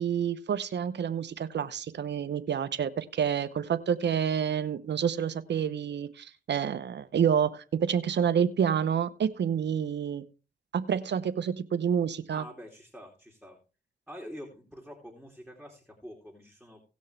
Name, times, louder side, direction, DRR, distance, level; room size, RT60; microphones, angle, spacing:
voice 1, 0.0-10.2 10.7-12.4, right 8 dB, 70° right, 13 dB, 0.9 m, -28 dB
voice 2, 12.3-13.6 14.1-16.8, equal, ahead, 1 dB, 3.1 m, -46 dB
18.0 x 6.3 x 3.4 m, 0.35 s
cardioid pair, 55°, 19 cm